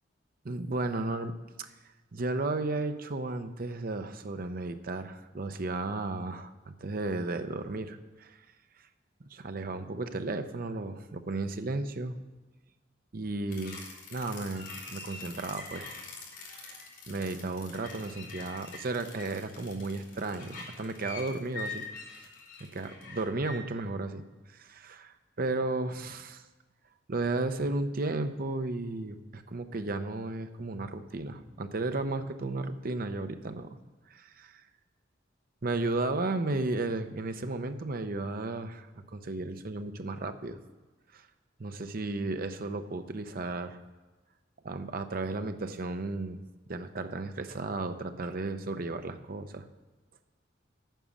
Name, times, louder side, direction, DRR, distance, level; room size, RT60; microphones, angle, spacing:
voice 1, 0.4-1.7 2.1-8.4 9.3-12.1 13.1-16.0 16.6-16.8 17.1-21.8 22.7-24.2 24.5-26.4 27.1-33.7 34.1-34.6 35.6-40.6 41.1-41.3 41.6-43.8 44.6-46.4 46.7-49.6, right 2 dB, 50° right, 9 dB, 0.7 m, -34 dB
sound 1, 13.5-23.6, left 3 dB, 70° left, 3.5 m, -44 dB
9.1 x 6.1 x 8.5 m, 1.3 s
head